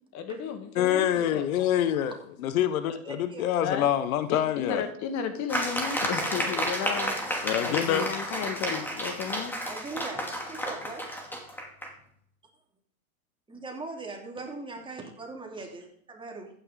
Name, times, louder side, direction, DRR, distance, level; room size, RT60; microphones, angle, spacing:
voice 1, 0.1-1.5 2.9-3.0 3.6-3.9 4.3-7.1 7.6-9.8, left 7 dB, 40° left, 8 dB, 1.7 m, -34 dB
voice 2, 0.8-4.8 6.0-6.1 7.4-8.1, left 10 dB, 70° left, 12 dB, 1.1 m, -26 dB
voice 3, 3.1-3.5 6.2-7.3 9.7-11.0 13.5-16.5, right 3 dB, 10° right, 1 dB, 2.8 m, -41 dB
sound 1, 5.5-11.9, equal, 5° left, 2.6 m, -31 dB
14.5 x 9.8 x 3.8 m, 0.65 s
hypercardioid pair, 120°, 44 cm